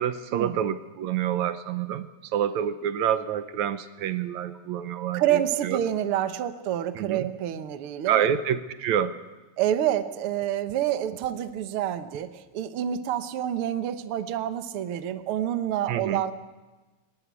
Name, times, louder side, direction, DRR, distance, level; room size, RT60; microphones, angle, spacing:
voice 1, 0.0-5.8 7.0-7.3 8.1-9.2 15.9-16.2, right 9 dB, 75° right, 12 dB, 2.1 m, -27 dB
voice 2, 5.1-8.3 9.6-16.3, right 11 dB, 60° right, 10 dB, 1.7 m, -28 dB
21.0 x 20.5 x 8.3 m, 1.2 s
omnidirectional pair, 3.4 m